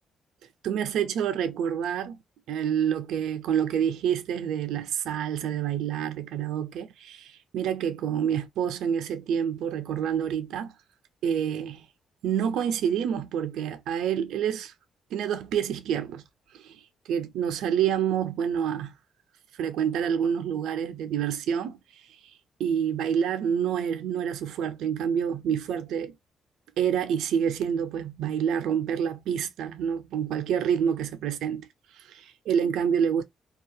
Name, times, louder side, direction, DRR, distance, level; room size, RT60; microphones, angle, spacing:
voice 1, 0.6-2.2 2.5-10.7 11.2-11.9 12.2-14.7 15.1-16.2 16.5-16.8 17.1-18.9 19.6-21.8 22.6-26.2 26.8-31.7 32.0-33.2, right 8 dB, 80° right, 0.4 m, -27 dB
2.3 x 2.2 x 2.6 m
cardioid pair, 90°, 0 cm